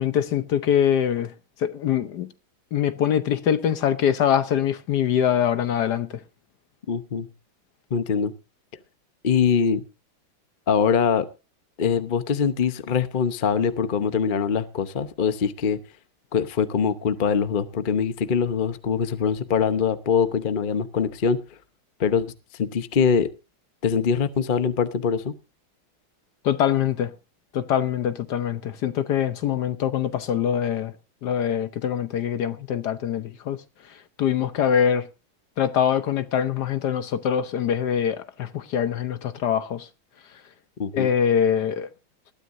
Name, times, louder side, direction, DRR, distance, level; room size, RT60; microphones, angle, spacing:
voice 1, 0.0-1.3 1.6-2.3 2.7-6.2 26.4-27.1 27.5-30.9 31.2-35.1 35.6-39.9 40.9-41.9, left 9 dB, 65° left, 1.3 m, -24 dB
voice 2, 6.9-7.3 7.9-8.3 9.2-9.8 10.7-11.3 11.8-15.8 16.3-21.4 22.0-22.3 22.6-23.3 23.8-25.3 40.8-41.1, left 6 dB, 45° left, 0.6 m, -23 dB
20.0 x 12.5 x 2.6 m
omnidirectional pair, 2.2 m